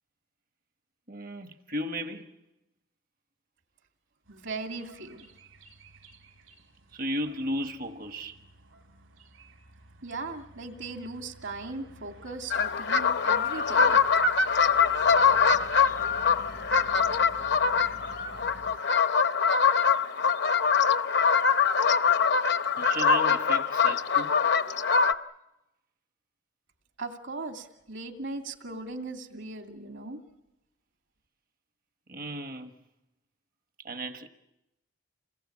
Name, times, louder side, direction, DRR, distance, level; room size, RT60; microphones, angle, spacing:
voice 1, 1.1-2.3 6.9-8.4 15.4-16.1 22.8-24.3 32.1-32.7 33.8-34.3, right 1 dB, 45° right, 1.3 m, -35 dB
voice 2, 4.3-5.3 10.0-14.0 27.0-30.2, right 3 dB, 60° right, 2.5 m, -38 dB
sound 1, 4.3-18.8, right 1 dB, 75° right, 4.0 m, -51 dB
sound 2, 12.5-25.1, left 6 dB, 50° left, 0.8 m, -23 dB
28.0 x 20.0 x 8.6 m
head